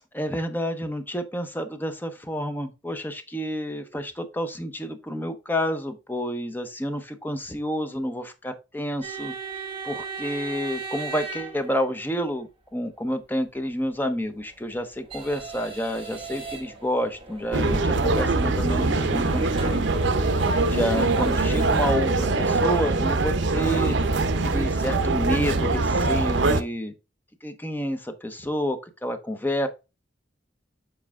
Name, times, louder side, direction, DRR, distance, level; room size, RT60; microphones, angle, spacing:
voice 1, 0.1-19.9 20.6-24.0 24.4-26.9 27.4-29.7, equal, 10° left, 0.8 m, -29 dB
sound 1, 9.0-12.2 14.2-21.9, right 3 dB, 30° right, 1.5 m, -37 dB
sound 2, 17.5-26.6, right 3 dB, 70° right, 0.7 m, -23 dB
7.5 x 4.7 x 3.5 m
head